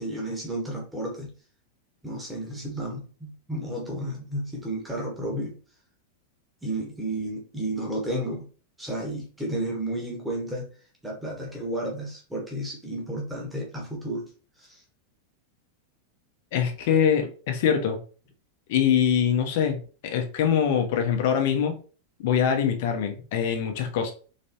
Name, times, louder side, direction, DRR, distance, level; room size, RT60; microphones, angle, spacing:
voice 1, 0.0-1.3 2.0-5.5 6.6-8.5 8.8-10.7 11.0-14.2 14.6-14.8, right 1 dB, 5° right, -2 dB, 1.3 m, -32 dB
voice 2, 16.5-18.0 18.7-21.7 22.2-24.1, left 8 dB, 50° left, 4 dB, 0.9 m, -23 dB
4.1 x 3.1 x 2.8 m, 0.39 s
figure-of-eight pair, 90°, 0 cm